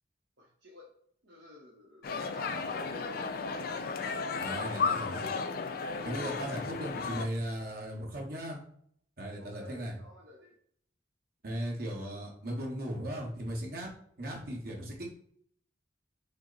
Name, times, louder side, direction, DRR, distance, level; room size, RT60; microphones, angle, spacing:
voice 1, 0.4-0.9 1.2-3.7 4.4-5.3 9.4-10.6, left 1 dB, 75° right, -2 dB, 0.9 m, -49 dB
sound 1, 2.0-7.3, left 4 dB, 55° left, 0.4 m, -34 dB
voice 2, 4.4-5.2 6.0-8.6 9.2-10.0 11.4-13.9 14.2-15.1, right 1 dB, 55° right, -2 dB, 1.3 m, -37 dB
6.1 x 2.1 x 3.9 m, 0.66 s
head